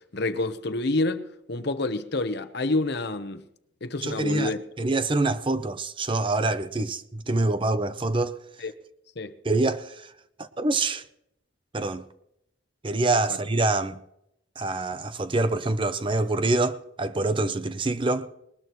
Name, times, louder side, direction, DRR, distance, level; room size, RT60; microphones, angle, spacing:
voice 1, 0.0-3.4 3.8-4.6 8.6-8.7 9.2-9.3, left 2 dB, 60° left, 1.0 m, -28 dB
voice 2, 4.0-8.4 9.4-10.1 10.4-11.0 11.7-12.0 12.8-14.0 14.6-18.3, right 2 dB, 25° right, 0.6 m, -26 dB
20.5 x 19.5 x 3.1 m
head